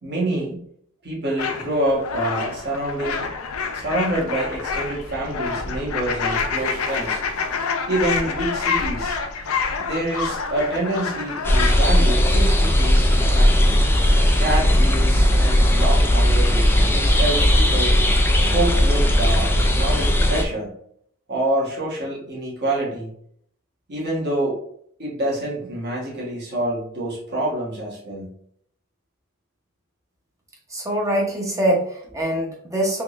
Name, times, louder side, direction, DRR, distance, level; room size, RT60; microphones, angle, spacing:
voice 1, 0.0-0.7 1.0-3.3 3.7-7.2 7.9-9.2 9.8-13.8 14.3-18.0 18.5-20.8 21.3-23.1 23.9-24.6 25.0-28.3, right 1 dB, 50° right, -5 dB, 1.3 m, -27 dB
sound 1, 1.4-11.8, left 5 dB, 75° left, 0.5 m, -27 dB
sound 2, 11.4-20.4, equal, 10° left, 0.3 m, -17 dB
voice 2, 30.7-33.0, right 1 dB, 15° right, -1 dB, 0.8 m, -23 dB
3.6 x 3.1 x 2.4 m, 0.66 s
head